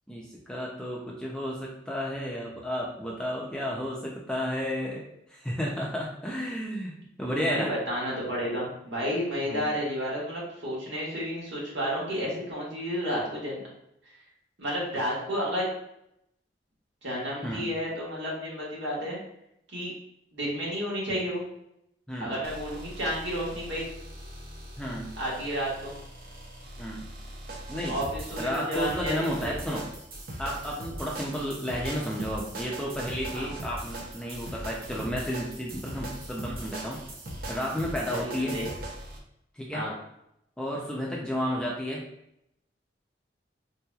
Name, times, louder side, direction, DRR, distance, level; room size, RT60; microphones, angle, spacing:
voice 1, 0.1-5.0 5.3-7.7 9.5-9.7 17.4-17.7 22.1-22.3 24.8-25.1 26.8-27.1 27.7-28.0 28.4-29.8 30.4-37.0 37.5-38.6 39.5-39.8 40.6-42.0, equal, 5° left, -3 dB, 0.4 m, -32 dB
voice 2, 7.5-13.6 14.6-15.7 17.0-19.2 19.7-19.9 20.3-21.4 22.2-23.8 25.2-25.9 27.9-29.8 33.3-33.5 38.1-38.7 39.7-39.9, equal, 90° right, -5 dB, 1.5 m, -31 dB
sound 1, 22.4-39.2, right 1 dB, 55° right, 0.7 m, -40 dB
3.7 x 2.9 x 2.3 m, 0.80 s
head